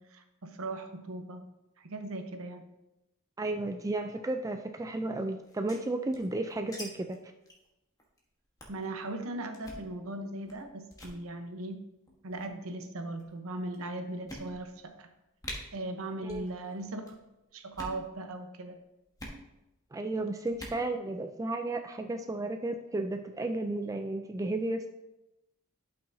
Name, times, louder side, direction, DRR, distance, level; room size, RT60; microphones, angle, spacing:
voice 1, 0.0-1.4 1.8-2.7 8.7-11.8 12.2-15.1 15.7-17.2 17.5-18.8, right 2 dB, 70° right, 6 dB, 0.9 m, -38 dB
voice 2, 3.4-7.2 16.3-16.5 19.9-24.9, right 2 dB, 15° right, 6 dB, 0.3 m, -33 dB
sound 1, 5.4-6.8 7.1-7.2 7.5-7.7 8.0-8.2 8.6-8.8 9.5-9.9 10.5-10.6 10.9-11.2 12.1-12.5 13.2-13.3 13.7-13.8 14.3-14.8 15.1-15.2 15.4-15.6 16.2-16.5 16.7-17.1 17.6-18.0 19.2-19.4 20.5-20.8, left 1 dB, 15° left, 1.2 m, -44 dB
11.5 x 5.6 x 2.7 m, 0.95 s
head